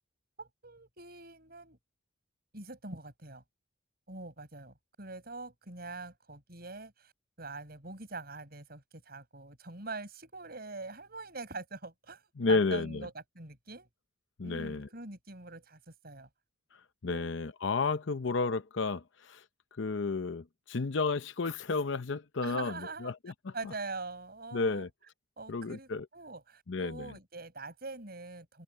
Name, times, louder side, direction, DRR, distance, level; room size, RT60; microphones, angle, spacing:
voice 1, 0.4-1.8 2.5-3.4 4.1-7.1 7.4-12.2 12.5-13.9 14.4-16.3 17.1-17.4 22.4-23.1 23.5-24.9 25.4-28.6, right 3 dB, 50° right, 7.0 m, -44 dB
voice 2, 12.4-13.1 14.4-14.9 17.0-19.4 19.8-23.5 24.5-24.9 25.5-26.1 26.7-27.1, left 4 dB, 65° left, 0.7 m, -32 dB
head